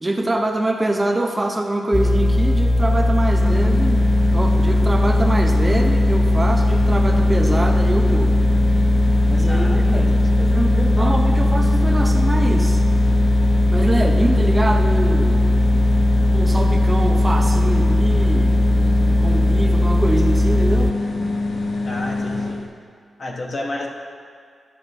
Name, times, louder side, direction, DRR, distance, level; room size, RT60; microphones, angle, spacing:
voice 1, 0.0-4.0 4.3-8.4 9.3-12.8 13.7-15.4 16.3-20.9, right 1 dB, 20° right, 3 dB, 0.7 m, -24 dB
sound 1, 1.9-20.9, left 1 dB, 15° left, 0.4 m, -18 dB
sound 2, 3.4-22.7, left 2 dB, 65° left, 0.9 m, -25 dB
voice 2, 9.5-10.2 10.9-11.2 21.8-22.6 23.2-23.9, left 2 dB, 45° left, 0 dB, 1.2 m, -31 dB
11.5 x 3.9 x 6.6 m, 2.1 s
wide cardioid pair, 105°, 0 cm